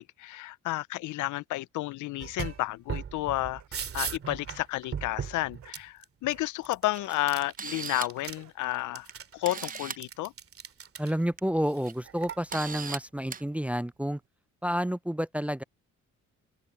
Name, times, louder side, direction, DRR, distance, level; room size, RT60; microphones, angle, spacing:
voice 1, 0.0-3.6 3.9-9.1 9.3-10.3, left 17 dB, 80° left, 0.5 m, -31 dB
sound 1, 2.2-2.6 2.9-6.4 6.7-8.4 8.6-11.1 11.7-12.9, right 7 dB, 50° right, 2.4 m, -38 dB
sound 2, 2.9-3.2 3.6-3.9 4.2-4.4 5.0-5.3 5.6-5.9 6.3-6.7 7.0-7.3 7.7-7.8 8.4-8.7 9.3-9.4, right 11 dB, 70° right, 7.8 m, -56 dB
Camera, 6.9-7.0 7.4-8.2 9.1-9.2 9.4-10.0 11.2-11.4 11.8-11.9 12.5-13.0 13.3-13.4, right 6 dB, 30° right, 0.8 m, -38 dB
voice 2, 11.0-14.2 14.6-15.6, equal, 5° right, 0.4 m, -30 dB
open air
cardioid pair, 90°, 30 cm